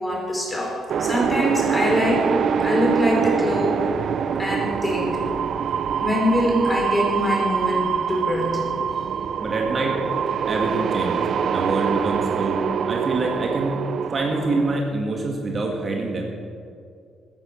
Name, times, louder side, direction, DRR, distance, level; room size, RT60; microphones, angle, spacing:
voice 1, 0.0-2.2 2.6-3.9 4.4-5.2 6.0-8.6, equal, 15° left, -1 dB, 4.5 m, -23 dB
sound 1, 0.9-14.8, right 7 dB, 60° right, 0.5 m, -25 dB
voice 2, 9.4-10.0 10.5-12.6 12.9-13.8 14.1-16.2, right 3 dB, 40° right, 0 dB, 2.0 m, -25 dB
14.5 x 10.0 x 6.6 m, 2.3 s
cardioid pair, 90°, 0 cm